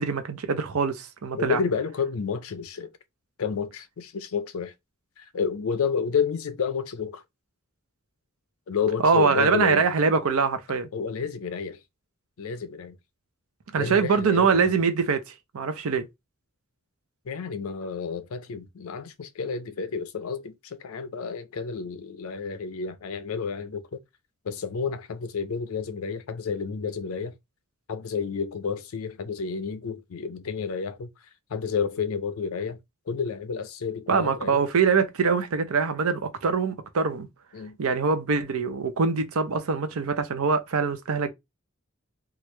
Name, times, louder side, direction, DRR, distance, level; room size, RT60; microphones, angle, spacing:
voice 1, 0.0-1.6 9.0-10.9 13.7-16.1 34.1-37.3 37.8-41.3, right 5 dB, 80° right, 0.6 m, -24 dB
voice 2, 1.4-2.9 3.4-4.7 5.2-7.2 8.7-9.9 10.9-11.8 12.4-13.0 13.8-14.7 17.3-24.0 24.4-27.4 27.9-31.1 31.5-32.8 33.1-34.7 37.5-37.8, left 6 dB, 80° left, 0.5 m, -30 dB
3.1 x 2.4 x 3.1 m
head